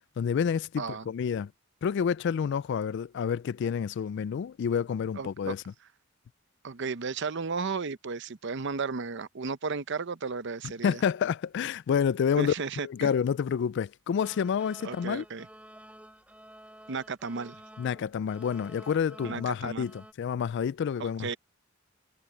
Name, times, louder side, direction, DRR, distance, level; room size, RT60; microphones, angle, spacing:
voice 1, 0.2-1.5 1.8-5.6 10.8-12.5 12.8-15.2 17.8-21.4, left 7 dB, 55° left, 0.3 m, -29 dB
voice 2, 0.8-1.1 5.1-5.5 6.6-11.0 12.4-13.1 14.8-15.5 16.9-17.6 19.2-19.9 21.2-21.4, right 4 dB, 60° right, 0.7 m, -34 dB
sound 1, 14.2-20.1, right 1 dB, 5° right, 6.2 m, -51 dB
head